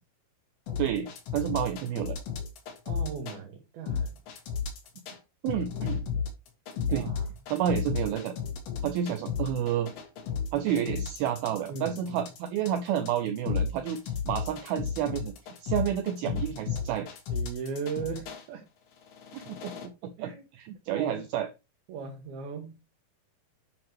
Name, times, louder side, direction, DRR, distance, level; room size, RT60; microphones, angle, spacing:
sound 1, 0.7-3.4 3.9-5.2 5.5-18.4 19.0-19.9, left 6 dB, 75° left, 4.2 m, -33 dB
voice 1, 0.8-2.2 5.4-6.0 6.9-7.1 7.5-8.4 8.8-9.9 10.5-15.3 15.6-17.1 19.3-21.5, right 9 dB, 85° right, 2.2 m, -30 dB
voice 2, 2.9-4.2 6.9-7.3 11.7-12.2 17.3-18.6 20.2-20.4 20.9-21.2 21.9-22.7, right 6 dB, 70° right, 2.7 m, -37 dB
9.3 x 6.2 x 3.0 m
omnidirectional pair, 5.0 m